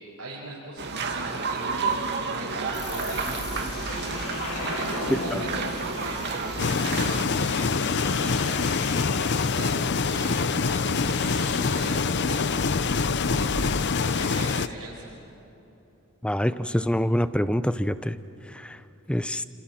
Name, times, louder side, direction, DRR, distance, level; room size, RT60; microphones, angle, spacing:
voice 1, 0.2-10.9 11.2-15.1, right 2 dB, 85° right, -5 dB, 5.1 m, -40 dB
sound 1, 0.8-7.2, right 4 dB, 50° right, 2.2 m, -31 dB
sound 2, 2.7-13.7, left 2 dB, 80° left, 4.0 m, -36 dB
sound 3, 6.6-14.7, left 5 dB, 50° left, 0.6 m, -25 dB
voice 2, 16.2-18.1 19.1-19.4, equal, 5° left, 14 dB, 0.6 m, -25 dB
30.0 x 26.0 x 7.5 m, 2.9 s
head